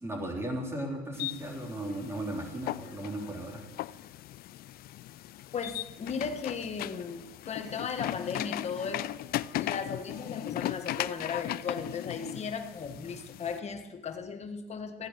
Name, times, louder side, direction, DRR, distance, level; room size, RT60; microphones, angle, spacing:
voice 1, 0.0-3.6, right 1 dB, 15° right, -1 dB, 3.8 m, -36 dB
sound 1, 1.1-13.6, left 15 dB, 65° left, 0.4 m, -38 dB
voice 2, 5.5-9.2 9.6-15.1, left 5 dB, 40° left, 6 dB, 1.4 m, -36 dB
14.5 x 10.0 x 7.6 m, 1.1 s
cardioid pair, 110°, 17 cm